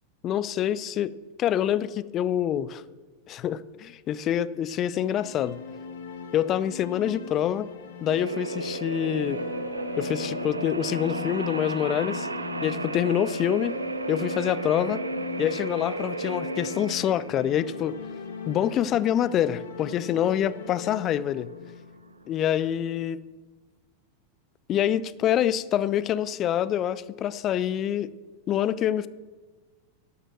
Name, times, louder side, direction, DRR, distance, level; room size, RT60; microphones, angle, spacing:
voice 1, 0.2-2.8 3.3-5.6 6.3-7.7 8.0-9.4 10.0-12.3 12.6-13.7 14.1-15.0 15.4-18.0 18.5-21.5 22.3-23.2 24.7-28.1 28.5-29.1, left 10 dB, 30° left, 18 dB, 0.5 m, -26 dB
sound 1, 4.7-22.6, left 6 dB, 60° left, 1.9 m, -39 dB
sound 2, 8.1-22.6, right 3 dB, 80° right, 0.6 m, -34 dB
11.5 x 7.9 x 7.6 m, 1.3 s
figure-of-eight pair, 90°, 0 cm